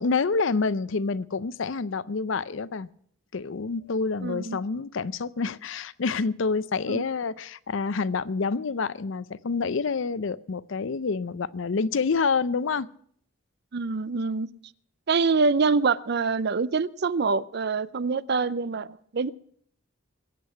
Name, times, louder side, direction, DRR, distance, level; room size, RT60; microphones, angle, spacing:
voice 1, 0.0-2.9 3.3-12.9, left 4 dB, 60° left, 0.5 m, -27 dB
voice 2, 4.2-4.6 6.9-7.0 13.7-14.5 15.1-19.3, right 4 dB, 50° right, 0.5 m, -25 dB
21.5 x 8.4 x 5.7 m
head